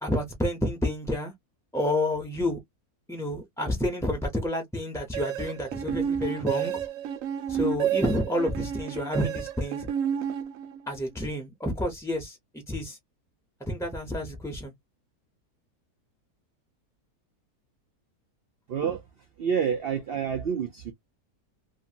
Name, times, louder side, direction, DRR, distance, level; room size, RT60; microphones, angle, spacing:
voice 1, 0.0-1.3 1.7-2.6 3.1-6.8 7.5-9.9 10.9-12.4 12.7-13.0 13.6-14.7, left 1 dB, 5° left, 0.4 m, -29 dB
sound 1, 5.1-11.0, right 9 dB, 65° right, 0.9 m, -30 dB
voice 2, 18.7-19.0 19.4-20.9, right 7 dB, 85° right, 0.5 m, -28 dB
2.9 x 2.5 x 2.8 m
omnidirectional pair, 1.7 m